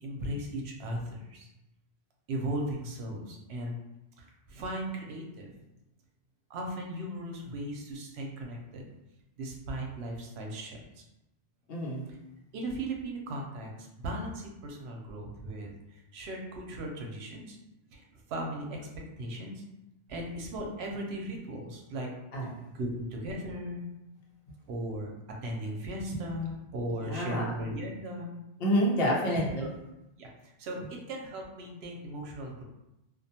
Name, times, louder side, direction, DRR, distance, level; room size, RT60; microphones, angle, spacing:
voice 1, 0.0-1.5 2.3-3.8 4.2-5.5 6.5-8.9 9.4-10.8 12.5-17.6 17.9-18.0 18.3-19.6 20.1-22.1 22.7-23.9 24.7-25.1 25.4-28.3 30.2-30.3 30.6-32.6, right 1 dB, 80° right, 1 dB, 0.8 m, -37 dB
voice 2, 11.7-12.0 22.3-22.6 27.0-27.5 28.6-29.7, equal, 70° left, -3 dB, 0.9 m, -28 dB
2.4 x 2.1 x 2.7 m, 0.92 s
omnidirectional pair, 1.1 m